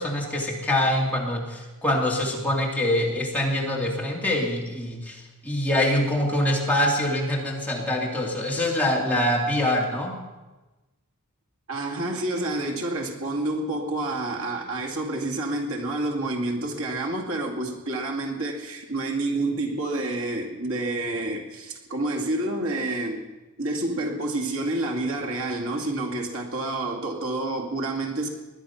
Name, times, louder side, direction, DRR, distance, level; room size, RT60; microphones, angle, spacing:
voice 1, 0.0-10.1, left 1 dB, 5° left, -2 dB, 2.5 m, -24 dB
voice 2, 11.7-23.2 23.6-28.3, right 2 dB, 65° right, 1 dB, 2.3 m, -28 dB
20.5 x 11.0 x 5.8 m, 1.1 s
head